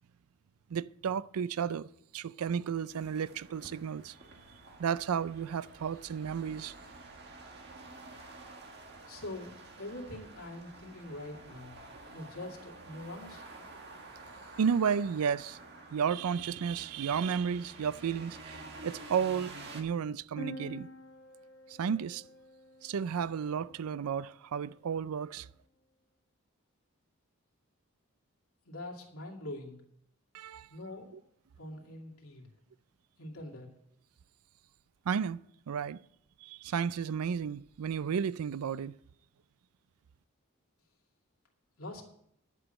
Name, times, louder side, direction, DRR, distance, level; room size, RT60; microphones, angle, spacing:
voice 1, 0.7-4.2 4.8-6.7 14.6-15.6 15.9-20.9 21.7-22.3 22.8-25.5 30.3-30.7 35.1-35.4 35.7-36.0 36.4-39.0, right 7 dB, 85° right, 0.4 m, -33 dB
sound 1, 2.9-19.8, right 2 dB, 50° right, 1.7 m, -50 dB
voice 2, 9.1-11.8 12.1-13.4 28.7-29.8 30.7-31.2 31.6-32.5 33.2-33.7 41.8-42.0, left 1 dB, 80° left, 2.4 m, -44 dB
sound 2, 20.4-24.1, left 1 dB, 45° left, 1.3 m, -48 dB
11.0 x 6.2 x 7.8 m
head